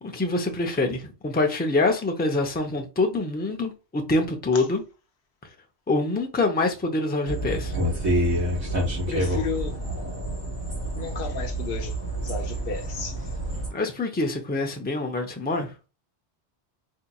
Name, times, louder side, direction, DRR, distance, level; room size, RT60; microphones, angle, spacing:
voice 1, 0.0-4.8 5.4-5.5 5.9-7.8 13.7-15.8, left 2 dB, 15° left, 0.4 m, -25 dB
sound 1, 7.3-13.7, right 1 dB, 40° right, 2.4 m, -28 dB
voice 2, 9.1-9.8 10.9-13.3, left 6 dB, 60° left, 0.9 m, -33 dB
4.0 x 2.8 x 2.3 m
omnidirectional pair, 1.1 m